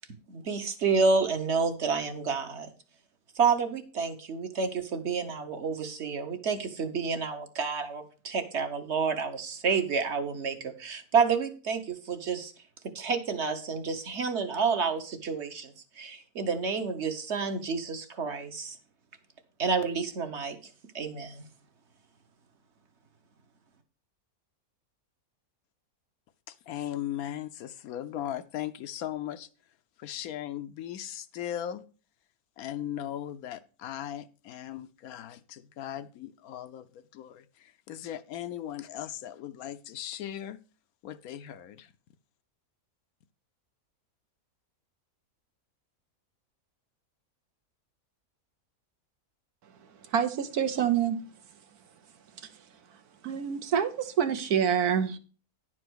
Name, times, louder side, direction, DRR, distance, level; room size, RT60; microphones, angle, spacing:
voice 1, 0.3-2.7 3.4-12.5 12.9-18.8 19.6-20.6 20.9-21.4, right 5 dB, 50° right, 7 dB, 1.2 m, -29 dB
voice 2, 26.5-29.5 30.0-31.8 32.6-36.9 37.1-40.6 41.0-41.9, left 11 dB, 75° left, 12 dB, 1.1 m, -38 dB
voice 3, 50.0-51.2 52.4-52.5 53.2-55.2, right 8 dB, 85° right, 9 dB, 1.4 m, -27 dB
10.5 x 4.6 x 6.2 m, 0.38 s
omnidirectional pair, 1.6 m